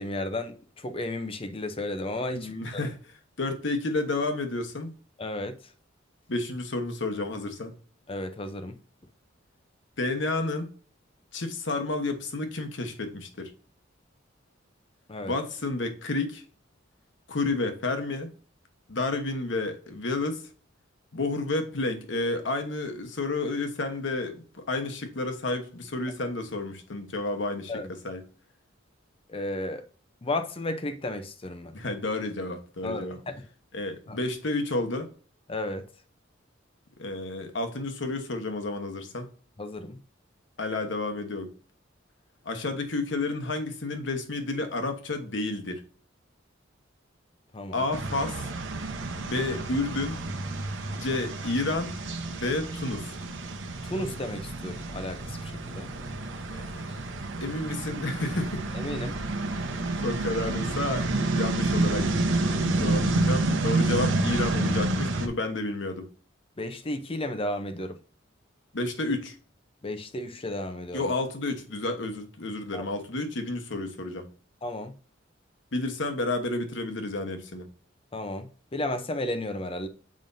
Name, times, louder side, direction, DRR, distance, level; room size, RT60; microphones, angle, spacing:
voice 1, 0.0-2.8 5.2-5.6 8.1-8.8 15.1-15.3 27.7-27.9 29.3-29.8 30.2-31.7 32.8-33.4 34.1-34.2 35.5-35.8 39.6-40.0 47.5-47.8 53.9-55.9 58.7-59.2 66.6-68.0 69.8-71.1 72.7-72.8 74.6-74.9 78.1-79.9, left 1 dB, 30° left, 0.6 m, -33 dB
voice 2, 2.3-4.9 6.3-7.7 10.0-10.7 11.3-13.5 15.2-16.4 17.3-18.3 18.9-20.5 21.1-28.2 31.7-33.2 33.7-35.1 37.0-39.3 40.6-41.5 42.4-45.8 47.7-48.4 49.2-50.2 51.0-51.9 52.3-53.1 56.5-57.1 57.4-58.6 60.0-66.1 68.7-69.4 70.9-74.3 75.7-77.7, left 2 dB, 65° left, 1.2 m, -31 dB
sound 1, 47.9-65.3, right 2 dB, 70° right, 1.0 m, -29 dB
7.5 x 5.2 x 2.7 m
head